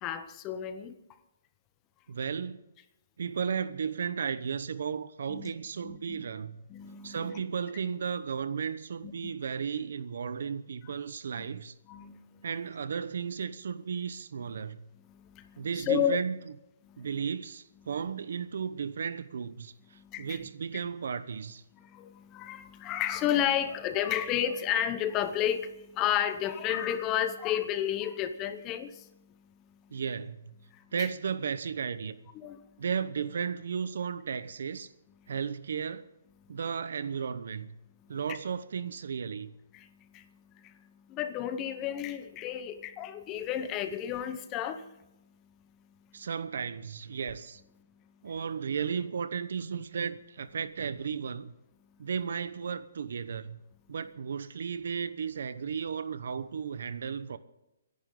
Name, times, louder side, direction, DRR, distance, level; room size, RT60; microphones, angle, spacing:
voice 1, 0.0-1.0 5.3-5.5 5.8-6.2 6.7-7.4 9.0-9.3 11.4-11.5 11.9-12.5 15.1-16.2 16.8-17.1 19.9-20.4 20.7-20.8 21.8-29.3 29.7-29.8 30.7-31.1 32.4-32.7 35.2-35.3 36.5-36.6 38.0-38.4 39.7-45.0, left 10 dB, 20° left, 0.8 m, -32 dB
voice 2, 2.1-2.6 3.2-6.6 7.0-11.7 12.4-14.9 15.6-16.5 17.0-19.7 20.2-21.6 29.9-30.5 30.9-32.2 32.8-34.9 35.3-36.1 36.5-37.8 38.1-39.5 46.1-47.6 48.2-51.5 52.0-53.6 53.9-57.4, right 6 dB, 65° right, 0.9 m, -34 dB
26.0 x 11.0 x 3.8 m
hypercardioid pair, 165°, 0 cm